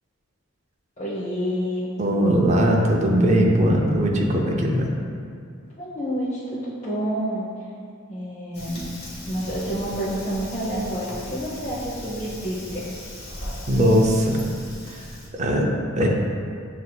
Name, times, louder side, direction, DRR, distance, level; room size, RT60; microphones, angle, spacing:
voice 1, 1.0-1.9 5.8-7.7 8.1-8.9 9.2-12.9, equal, 35° left, -10 dB, 0.7 m, -29 dB
voice 2, 2.0-4.9 13.7-14.4 14.9-15.0 15.3-16.1, equal, 35° right, 0 dB, 0.5 m, -20 dB
Fire, 8.5-15.3, left 1 dB, 50° left, 1.2 m, -37 dB
7.5 x 2.6 x 2.2 m, 2.2 s
head